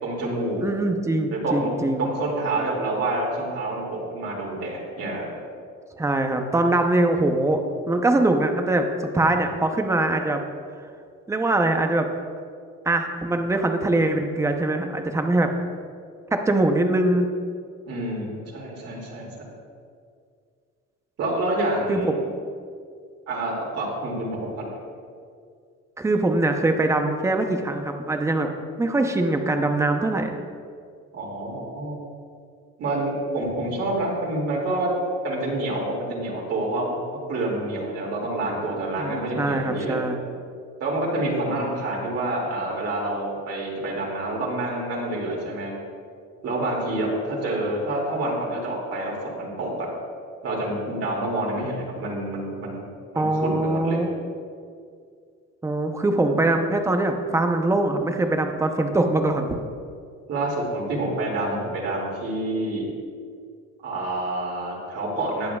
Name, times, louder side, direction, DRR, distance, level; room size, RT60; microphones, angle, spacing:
voice 1, 0.0-0.7 1.3-5.3 17.8-19.3 21.2-22.1 23.3-24.7 31.1-32.0 32.8-34.9 35.2-40.0 40.8-45.7 46.4-49.9 50.4-52.9 53.1-54.0 60.3-62.9 63.8-65.5, right 1 dB, 55° right, -3 dB, 2.4 m, -27 dB
voice 2, 0.6-2.1 6.0-10.4 11.3-12.1 12.9-15.5 16.3-17.3 21.9-22.2 26.0-28.5 28.8-30.3 39.0-40.1 53.2-54.1 55.6-59.6, right 2 dB, 10° right, 5 dB, 0.7 m, -22 dB
19.0 x 7.6 x 2.3 m, 2.2 s
cardioid pair, 150°, 30 cm